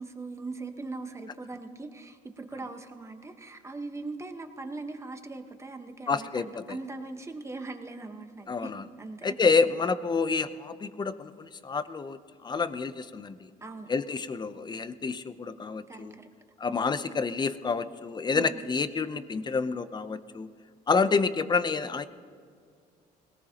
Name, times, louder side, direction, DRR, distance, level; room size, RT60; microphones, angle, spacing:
voice 1, 0.0-8.7 9.0-9.4 13.6-13.9 15.9-16.3 18.3-18.6, right 3 dB, 15° right, 6 dB, 1.2 m, -40 dB
voice 2, 6.1-6.5 8.5-8.8 9.2-13.4 13.9-16.2 16.6-20.5 20.9-22.1, left 4 dB, 25° left, 12 dB, 0.7 m, -28 dB
21.0 x 18.5 x 2.9 m, 2.1 s
cardioid pair, 110°, 17 cm